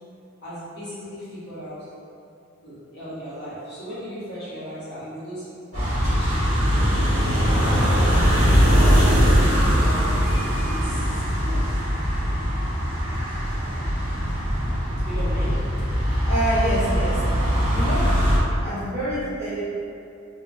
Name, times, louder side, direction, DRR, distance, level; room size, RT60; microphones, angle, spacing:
voice 1, 0.4-1.8 2.6-5.4 5.7-7.4 7.9-11.6 14.1-14.4 15.0-15.6, equal, 55° left, -11 dB, 1.0 m, -37 dB
sound 1, 5.7-18.4, equal, 35° right, 1.1 m, -21 dB
voice 2, 16.2-18.2 18.6-19.6, right 1 dB, 15° right, -14 dB, 1.1 m, -27 dB
3.3 x 2.2 x 2.4 m, 2.5 s
head